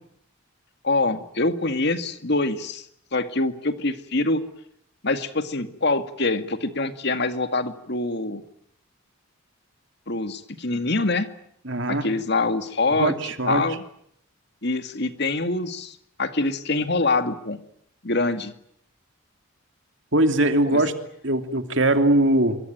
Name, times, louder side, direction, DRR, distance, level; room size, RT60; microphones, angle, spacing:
voice 1, 0.8-2.9 3.1-4.4 5.0-8.4 10.1-11.3 11.9-13.1 13.5-13.8 14.6-17.6 18.0-18.5 20.7-20.8, left 2 dB, 50° left, 9 dB, 2.2 m, -25 dB
voice 2, 11.6-12.1 13.0-13.6 20.1-20.9 21.2-22.6, right 1 dB, 60° right, 7 dB, 2.9 m, -21 dB
26.5 x 24.0 x 9.3 m, 0.70 s
head